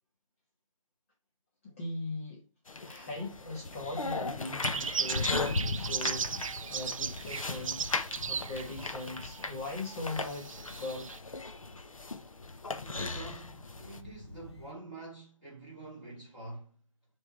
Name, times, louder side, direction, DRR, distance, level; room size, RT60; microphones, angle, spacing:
voice 1, 1.6-2.4 2.8-11.2, left 2 dB, 25° left, 1.4 m, -40 dB
sound 1, 2.7-14.0, left 3 dB, 85° left, 1.0 m, -38 dB
Thunder, 3.1-14.7, left 3 dB, 55° left, 1.1 m, -43 dB
sound 2, 4.6-9.5 9.9-11.2, right 6 dB, 75° right, 0.4 m, -37 dB
voice 2, 12.8-16.7, right 2 dB, 5° left, 3.0 m, -46 dB
6.3 x 3.7 x 4.5 m
figure-of-eight pair, 160°, 17 cm